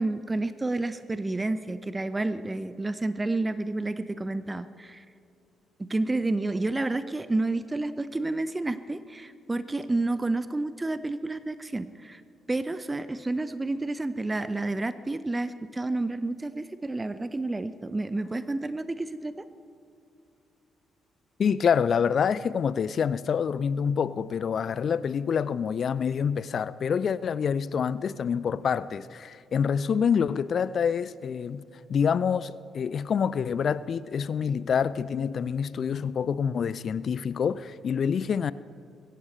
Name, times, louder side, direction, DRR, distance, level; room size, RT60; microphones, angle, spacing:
voice 1, 0.0-5.0 5.8-12.2 12.5-19.4, right 2 dB, 20° right, 0.7 m, -30 dB
voice 2, 21.4-31.6 31.9-38.5, left 7 dB, 45° left, 0.4 m, -27 dB
24.0 x 14.5 x 3.2 m
figure-of-eight pair, 40°, 0 cm